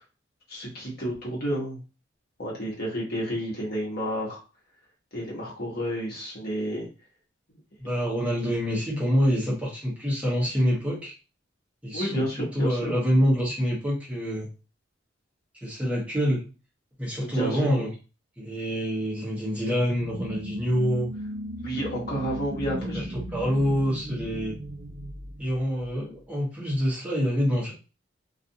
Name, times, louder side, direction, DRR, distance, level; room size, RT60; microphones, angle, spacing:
voice 1, 0.5-1.8 2.4-4.4 5.1-6.9 11.9-12.9 17.2-17.9 21.6-23.1, equal, 50° left, -4 dB, 1.1 m, -31 dB
voice 2, 7.8-11.1 11.8-14.5 15.5-16.4 17.0-17.9 18.4-21.1 22.6-22.9 23.3-24.6 25.4-27.7, equal, 5° right, -6 dB, 0.9 m, -26 dB
sound 1, 19.8-26.2, right 1 dB, 40° right, 0.5 m, -37 dB
2.4 x 2.4 x 2.7 m, 0.33 s
head